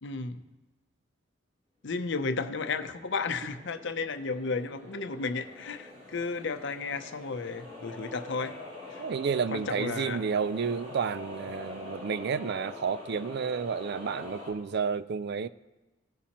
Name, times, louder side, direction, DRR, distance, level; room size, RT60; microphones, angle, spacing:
voice 1, 0.0-0.4 1.8-8.6 8.9-9.0 9.5-10.2, left 4 dB, 60° left, 0.7 m, -33 dB
sound 1, 2.1-14.5, left 2 dB, 35° right, 3.9 m, -45 dB
voice 2, 9.0-15.5, right 6 dB, 55° right, 0.4 m, -31 dB
18.5 x 7.1 x 3.0 m
head